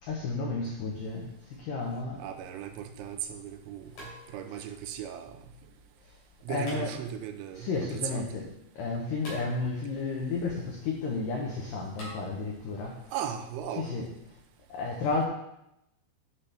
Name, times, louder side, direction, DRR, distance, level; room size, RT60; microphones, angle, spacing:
voice 1, 0.0-2.2 4.5-4.7 6.5-7.0 7.5-13.1 13.7-14.1 14.7-15.3, left 3 dB, 90° left, 0 dB, 1.9 m, -32 dB
voice 2, 2.2-5.4 6.5-7.7 8.1-8.3 13.1-13.9, right 9 dB, 90° right, 7 dB, 3.0 m, -37 dB
sound 1, 3.9-4.7 6.6-7.4 9.2-10.0 12.0-12.2, equal, 45° left, 3.7 m, -45 dB
10.5 x 5.8 x 3.4 m, 0.82 s
omnidirectional pair, 5.3 m